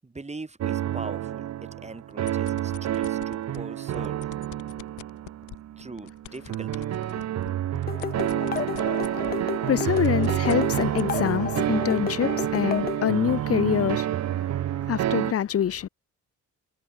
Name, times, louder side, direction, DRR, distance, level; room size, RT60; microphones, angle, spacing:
voice 1, 0.0-4.2 5.8-6.9, right 3 dB, 20° right, 7.2 m, -41 dB
sound 1, 0.6-15.3, right 12 dB, 60° right, 1.0 m, -28 dB
sound 2, 2.1-3.6 3.9-9.4 9.7-11.1, left 15 dB, 85° left, 2.0 m, -43 dB
sound 3, 7.9-13.0, left 8 dB, 30° left, 0.5 m, -32 dB
voice 2, 8.4-8.8 9.1-15.9, left 9 dB, 50° left, 1.3 m, -26 dB
cardioid pair, 90°, 30 cm